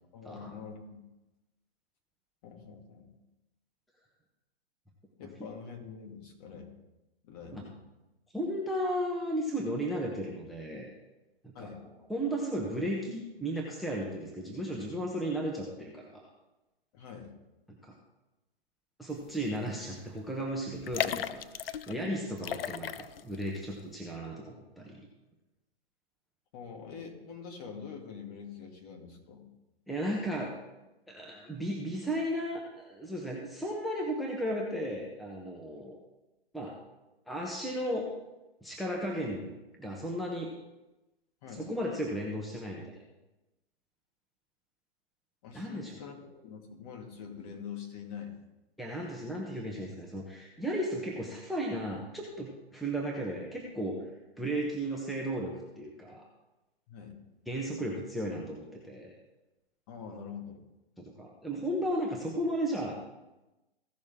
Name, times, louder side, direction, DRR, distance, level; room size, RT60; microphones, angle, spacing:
voice 1, 0.1-1.0 2.4-3.1 5.2-6.8 7.2-7.8 11.5-11.8 16.9-17.3 26.5-29.5 41.4-41.7 45.4-48.3 56.9-57.2 59.9-60.6, left 6 dB, 40° left, 2 dB, 2.3 m, -45 dB
voice 2, 8.3-10.9 11.4-11.7 12.1-16.2 17.7-17.9 19.0-25.1 29.9-30.5 31.1-36.0 36.5-36.7 37.3-38.1 38.6-40.5 41.6-43.0 45.5-46.0 48.8-54.0 54.4-56.2 57.5-59.1 61.0-63.0, equal, ahead, -2 dB, 1.0 m, -35 dB
sound 1, 19.5-19.7 20.0-20.1 20.8-22.0 22.4-23.4 23.8-23.9, left 10 dB, 65° left, 0.7 m, -35 dB
16.0 x 6.4 x 3.6 m, 0.99 s
hypercardioid pair, 135°, 31 cm